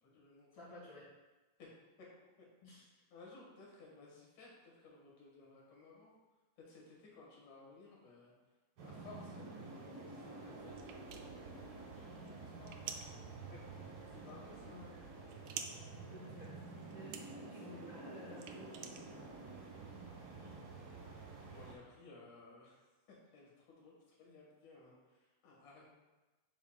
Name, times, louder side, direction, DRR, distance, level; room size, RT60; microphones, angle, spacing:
voice 1, 0.0-0.6 1.6-1.7 2.0-2.1 2.4-2.5 3.1-6.1 6.6-8.3 8.8-11.0 11.9-13.2 13.5-14.9 17.2-17.3 20.3-20.6 21.5-25.9, left 3 dB, 90° left, -3 dB, 3.0 m, -58 dB
voice 2, 0.5-1.1 2.6-3.0 14.7-15.1 16.1-18.9, left 1 dB, 50° left, -8 dB, 2.8 m, -54 dB
sound 1, 8.8-21.7, right 3 dB, 55° right, 1.7 m, -50 dB
sound 2, 10.8-19.6, right 8 dB, 80° right, 1.9 m, -51 dB
8.1 x 5.8 x 2.3 m, 1.2 s
omnidirectional pair, 3.4 m